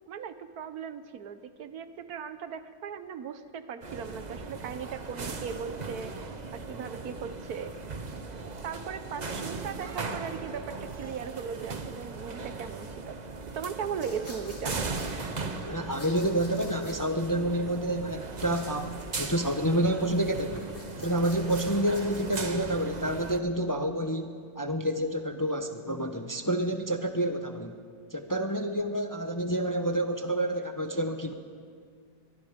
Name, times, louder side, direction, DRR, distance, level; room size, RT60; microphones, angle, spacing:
voice 1, 0.1-6.3 6.5-7.7 8.3-13.2 13.5-14.8, right 7 dB, 75° right, 11 dB, 1.4 m, -38 dB
sound 1, 3.8-23.4, right 3 dB, 30° right, 1.0 m, -38 dB
sound 2, 14.0-15.1 15.9-17.0 18.5-19.6 20.2-22.5, left 1 dB, 45° left, 4.6 m, -48 dB
voice 2, 15.5-20.7 21.0-27.7 28.1-31.3, right 1 dB, 15° left, 6 dB, 0.8 m, -29 dB
23.0 x 23.0 x 5.2 m, 2.1 s
omnidirectional pair, 1.7 m